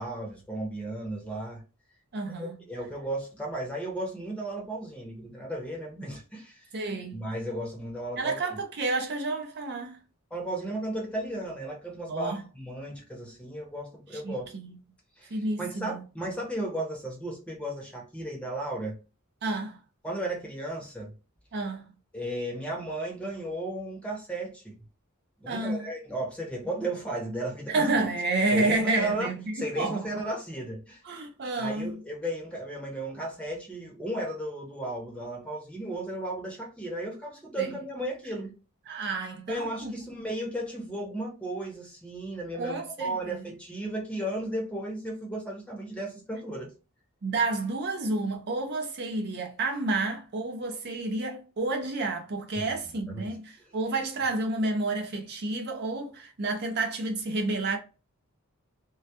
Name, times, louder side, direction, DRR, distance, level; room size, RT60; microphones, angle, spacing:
voice 1, 0.0-1.6 2.4-6.7 7.1-8.4 10.3-14.5 15.2-19.0 20.0-21.1 22.1-24.8 25.4-27.8 28.5-31.0 31.6-38.5 39.5-46.7 52.5-52.7 53.0-53.3, right 1 dB, 5° left, 0.7 m, -34 dB
voice 2, 2.1-2.6 6.7-7.2 8.2-10.0 12.1-12.5 14.1-14.8 15.3-16.0 19.4-19.8 21.5-21.9 25.5-25.9 27.7-30.1 31.0-32.0 37.6-37.7 38.9-39.9 42.5-43.5 47.2-57.8, right 2 dB, 50° right, 0.5 m, -30 dB
2.2 x 2.1 x 2.7 m
head